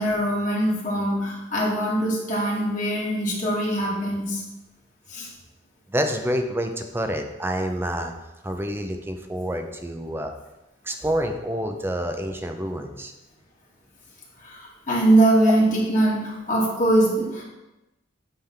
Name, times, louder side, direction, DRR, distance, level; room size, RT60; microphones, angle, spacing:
voice 1, 0.0-4.4 5.1-5.3 14.4-17.4, right 1 dB, 40° left, -4 dB, 2.1 m, -22 dB
voice 2, 5.9-8.1 8.4-10.3 10.8-13.1, equal, 10° right, 5 dB, 0.6 m, -28 dB
8.7 x 3.5 x 5.8 m, 1.0 s
head